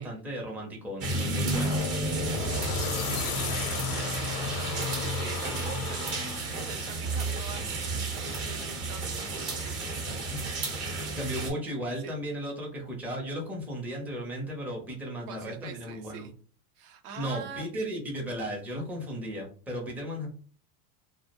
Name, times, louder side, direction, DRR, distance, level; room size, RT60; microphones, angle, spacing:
voice 1, 0.0-1.8 10.3-10.5 11.2-16.3 17.2-20.3, equal, 5° right, -1 dB, 0.5 m, -35 dB
sound 1, 1.0-11.5, right 2 dB, 35° right, 0.7 m, -32 dB
sound 2, 1.5-6.6, left 7 dB, 90° left, 0.6 m, -36 dB
voice 2, 2.5-7.8 8.1-10.5 12.0-12.1 15.3-16.3 16.8-17.8, right 7 dB, 85° right, 7 dB, 0.7 m, -45 dB
2.3 x 2.0 x 2.8 m, 0.41 s
supercardioid pair, 130°, 44 cm